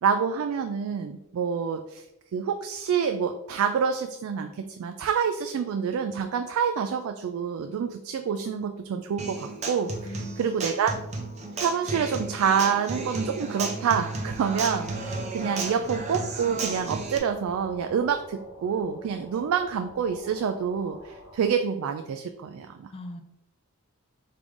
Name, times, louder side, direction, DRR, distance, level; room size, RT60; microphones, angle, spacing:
voice 1, 0.0-2.1 2.3-10.9 11.6-22.9, right 7 dB, 75° right, 6 dB, 0.3 m, -27 dB
Human voice / Acoustic guitar, 9.2-17.2, right 3 dB, 30° right, 0.6 m, -34 dB
voice 2, 10.0-10.8 22.9-23.2, left 1 dB, 25° left, 6 dB, 0.4 m, -40 dB
sound 1, 14.3-21.5, left 1 dB, 75° left, 0.9 m, -48 dB
3.7 x 3.3 x 3.5 m, 0.89 s
head